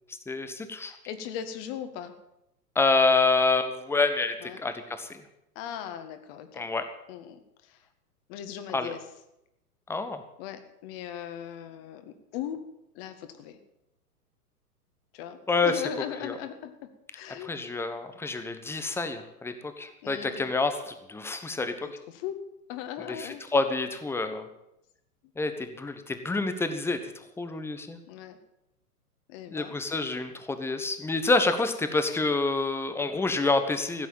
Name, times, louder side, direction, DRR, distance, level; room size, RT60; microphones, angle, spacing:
voice 1, 0.3-1.0 2.7-5.2 6.5-6.9 8.7-8.9 9.9-10.2 15.5-15.8 16.2-16.4 17.3-21.9 23.1-24.5 25.4-28.0 29.5-34.1, left 3 dB, 5° left, 9 dB, 1.1 m, -28 dB
voice 2, 0.8-2.1 4.4-4.6 5.6-6.7 7.1-7.8 8.3-9.0 10.4-12.6 12.9-13.6 15.1-16.7 17.1-17.5 20.0-20.4 21.6-22.4 22.7-23.4 28.1-28.4 29.3-29.7, left 10 dB, 35° left, 9 dB, 1.8 m, -38 dB
15.5 x 8.1 x 9.2 m, 0.85 s
figure-of-eight pair, 110°, 47 cm